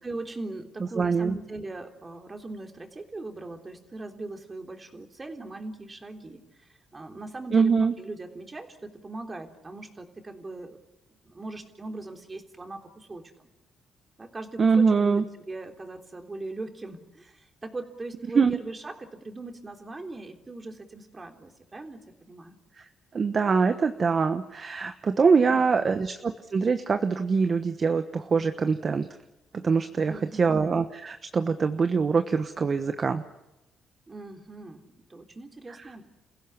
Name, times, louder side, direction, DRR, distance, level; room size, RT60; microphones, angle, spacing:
voice 1, 0.0-10.8 11.2-13.2 14.2-22.6 25.4-26.0 30.1-30.6 34.1-36.0, right 2 dB, 25° right, 4 dB, 3.5 m, -40 dB
voice 2, 1.0-1.3 7.5-7.9 14.6-15.2 18.3-18.6 22.8-22.9 23.1-29.1 29.5-33.2, right 5 dB, 40° right, 8 dB, 1.2 m, -24 dB
29.0 x 16.0 x 9.8 m, 0.96 s
cardioid pair, 90°, 0 cm